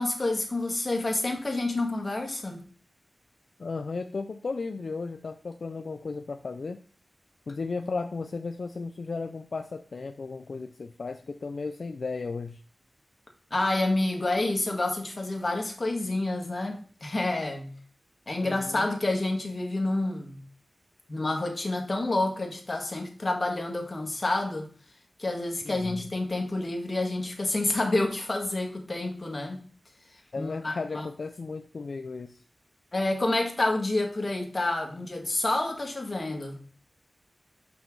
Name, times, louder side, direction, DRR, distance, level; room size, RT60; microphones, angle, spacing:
voice 1, 0.0-2.6 13.5-17.7 18.3-20.4 21.1-24.7 25.2-29.6 30.4-31.0 32.9-36.6, left 2 dB, 40° left, 1.7 m, -28 dB
voice 2, 3.6-6.8 7.5-12.6 18.4-18.9 25.6-26.0 30.3-32.4, left 4 dB, 70° left, 0.4 m, -35 dB
6.0 x 5.4 x 4.6 m
wide cardioid pair, 85°, 0 cm